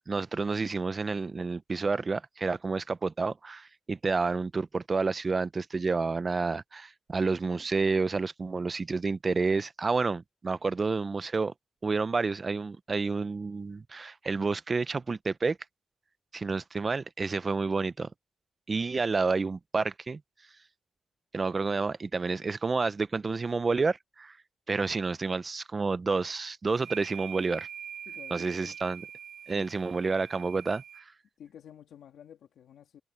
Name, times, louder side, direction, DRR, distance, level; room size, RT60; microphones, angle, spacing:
voice 1, 0.1-11.5 11.8-15.6 16.3-18.1 18.7-20.2 21.3-24.4 24.7-27.7 28.3-29.0 29.5-30.8, right 4 dB, 35° right, 0.7 m, -29 dB
sound 1, 26.8-31.0, right 9 dB, 75° right, 6.4 m, -44 dB
voice 2, 28.1-28.8 29.5-29.7 31.4-33.0, left 9 dB, 85° left, 2.6 m, -51 dB
cardioid pair, 80°, 0 cm